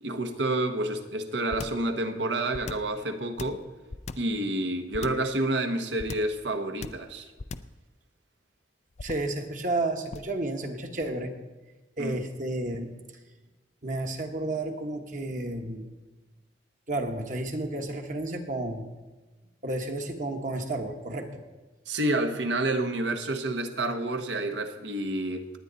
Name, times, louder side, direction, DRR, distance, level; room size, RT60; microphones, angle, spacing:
voice 1, 0.0-3.6 4.2-7.3 12.0-12.2 21.9-25.5, right 1 dB, 75° right, 6 dB, 1.3 m, -29 dB
sound 1, 1.5-1.9 2.5-3.0 3.4-4.4 4.9-5.3 6.0-6.4 6.8-7.1 7.4-7.8 9.0-9.4 10.1-10.4, left 3 dB, 40° left, 0.4 m, -38 dB
voice 2, 9.0-11.3 12.0-12.9 13.8-15.8 16.9-18.9 19.6-21.4, right 2 dB, 45° right, 4 dB, 1.3 m, -31 dB
19.0 x 9.5 x 4.1 m, 1.2 s
head